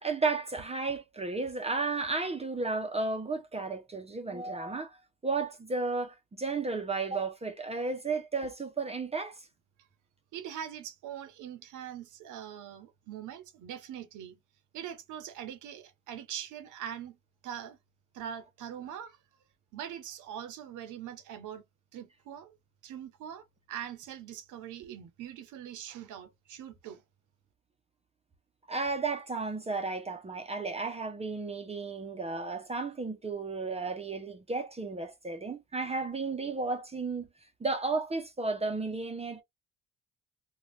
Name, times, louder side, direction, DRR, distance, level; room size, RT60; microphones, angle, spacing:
voice 1, 0.0-5.0 5.2-9.5 28.7-37.3 37.6-39.4, right 3 dB, 20° right, 0.6 m, -33 dB
voice 2, 10.3-14.4 14.7-17.2 17.4-17.8 18.1-19.2 19.7-21.6 21.9-22.5 22.8-27.0, right 9 dB, 85° right, 0.7 m, -42 dB
2.6 x 2.3 x 3.1 m
cardioid pair, 90°, 30 cm